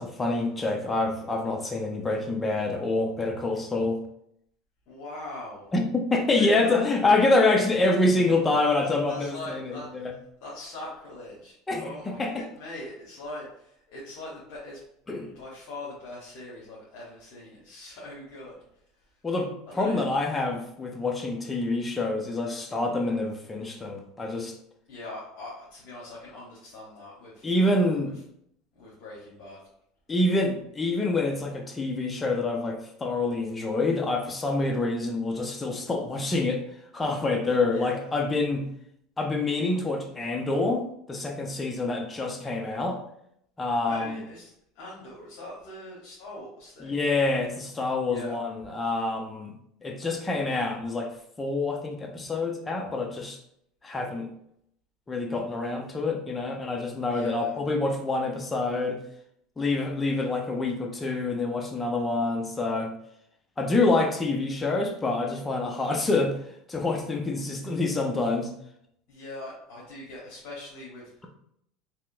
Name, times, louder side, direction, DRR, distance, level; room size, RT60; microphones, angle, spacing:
voice 1, 0.0-4.0 5.7-10.1 11.7-12.4 15.1-15.3 19.2-24.5 27.4-28.1 30.1-36.6 36.9-38.7 39.2-43.0 43.6-44.2 46.8-49.5 49.8-51.1 51.4-53.4 53.8-54.3 55.1-59.0 59.6-62.9 63.6-66.4 66.7-68.5, left 2 dB, 20° left, 3 dB, 0.7 m, -26 dB
voice 2, 4.9-5.7 6.3-6.9 8.6-8.8 9.1-10.1 10.4-14.8 15.3-18.6 19.7-20.0 24.9-27.5 28.0-28.1 28.7-29.6 37.7-38.1 43.9-46.9 48.1-48.4 57.1-57.6 69.1-71.1, left 1 dB, 60° left, -6 dB, 1.2 m, -41 dB
3.5 x 2.8 x 2.6 m, 0.73 s
hypercardioid pair, 85°, 0 cm